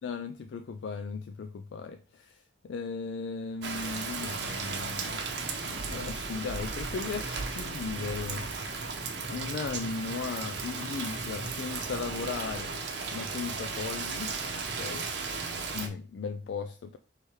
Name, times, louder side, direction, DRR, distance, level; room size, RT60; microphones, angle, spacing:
voice 1, 0.0-5.2 5.6-8.4 9.3-12.8 13.1-15.1 15.7-17.0, left 5 dB, 80° left, 0.3 m, -37 dB
Rain, 3.6-15.9, right 4 dB, 70° right, 0.7 m, -35 dB
4.4 x 3.3 x 3.2 m
head